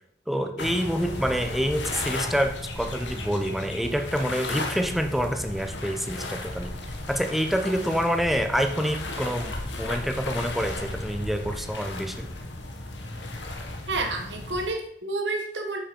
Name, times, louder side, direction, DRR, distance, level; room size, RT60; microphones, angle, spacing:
voice 1, 0.3-6.7 7.1-12.3, equal, ahead, 6 dB, 1.0 m, -27 dB
sound 1, 0.6-14.7, left 2 dB, 80° left, 1.8 m, -35 dB
voice 2, 13.9-15.8, right 2 dB, 75° right, 3 dB, 1.6 m, -29 dB
10.0 x 6.6 x 5.3 m, 0.69 s
head